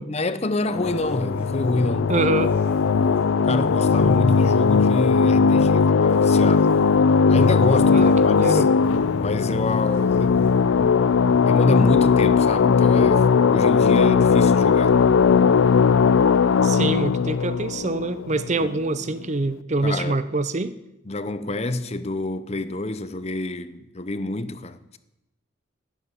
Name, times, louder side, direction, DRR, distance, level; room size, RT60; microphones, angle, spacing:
voice 1, 0.0-2.1 3.4-6.7 7.3-8.6 9.2-10.9 11.4-15.0 18.6-18.7 19.8-20.2 21.1-25.0, left 2 dB, 30° left, 0.7 m, -27 dB
sound 1, 0.7-18.8, left 5 dB, 70° left, 0.4 m, -18 dB
sound 2, 0.8-11.6, equal, 10° left, 4.5 m, -44 dB
voice 2, 2.1-2.6 7.9-8.7 16.6-20.8, right 2 dB, 35° right, 0.6 m, -25 dB
12.5 x 8.5 x 9.7 m
head